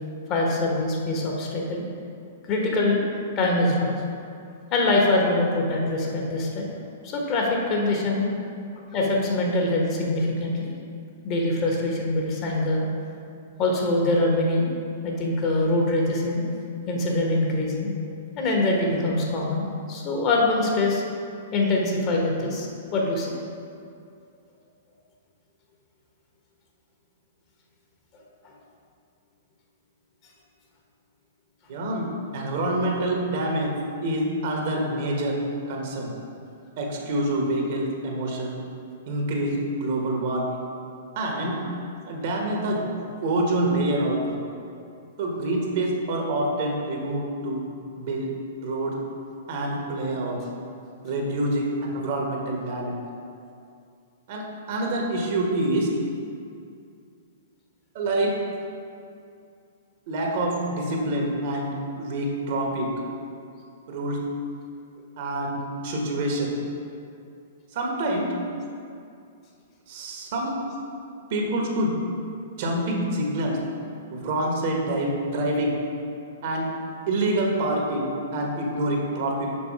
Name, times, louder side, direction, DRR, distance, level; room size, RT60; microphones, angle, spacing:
voice 1, 0.3-1.8 2.5-3.1 3.4-4.0 4.7-8.3 8.9-10.7 11.2-12.9 13.6-14.7 15.0-16.4 16.9-17.9 18.4-21.0 21.5-23.3 28.4-28.5, left 2 dB, 35° left, -1 dB, 1.4 m, -24 dB
voice 2, 31.7-32.0 32.3-33.7 34.0-35.3 35.7-36.1 36.8-38.5 39.1-40.6 41.1-41.6 42.1-42.8 43.2-44.2 45.2-47.6 48.0-48.3 48.6-48.9 49.5-50.4 51.0-51.6 51.9-53.0 54.3-55.9 57.9-58.3 60.1-62.9 63.9-64.2 65.2-65.6 65.8-66.5 67.7-68.3 69.9-70.5 71.3-71.9 72.6-73.6 74.1-75.7 76.4-76.6 77.1-78.1 78.3-79.5, right 1 dB, 55° right, 0 dB, 1.4 m, -26 dB
6.1 x 5.4 x 4.8 m, 2.4 s
figure-of-eight pair, 110°, 0 cm